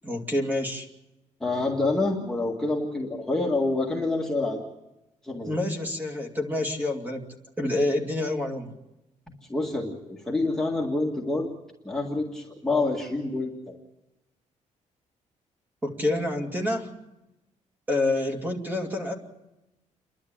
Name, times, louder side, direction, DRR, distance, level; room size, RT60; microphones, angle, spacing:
voice 1, 0.0-0.9 5.5-7.2 7.6-8.7 15.8-16.9 17.9-19.1, left 1 dB, 15° right, 2 dB, 2.4 m, -27 dB
voice 2, 1.4-4.6 5.2-5.6 9.5-11.5 11.8-13.5, left 2 dB, 5° left, -2 dB, 1.9 m, -27 dB
29.0 x 12.0 x 8.7 m, 0.94 s
cardioid pair, 175°, 13 cm